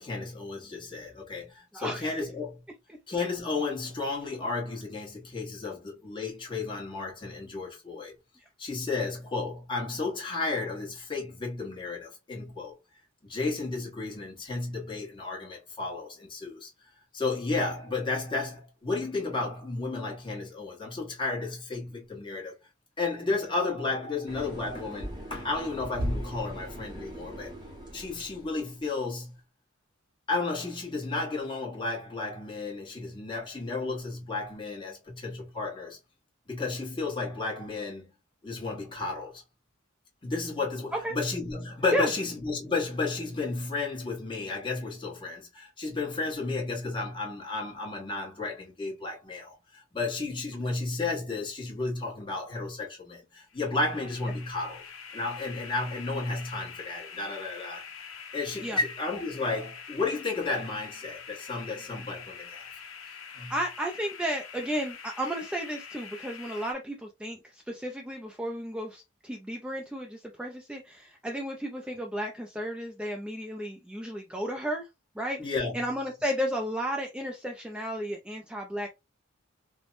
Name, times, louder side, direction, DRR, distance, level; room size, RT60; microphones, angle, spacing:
voice 1, 0.0-2.6 3.1-8.1 8.6-12.7 13.2-16.7 17.1-22.5 23.0-27.5 27.9-29.4 30.3-36.0 36.5-38.1 38.4-39.4 40.2-54.8 55.1-57.8 58.3-62.6 63.3-63.5 75.4-75.8, left 3 dB, 25° left, 1.1 m, -33 dB
voice 2, 1.7-2.2 41.0-41.1 41.9-42.1 58.6-58.8 63.5-67.4 67.7-74.8 75.2-78.9, equal, 5° right, 0.3 m, -33 dB
sound 1, 24.3-28.9, equal, 20° right, 0.8 m, -38 dB
sound 2, 53.5-66.7, left 6 dB, 70° left, 0.6 m, -45 dB
3.3 x 2.1 x 2.4 m
head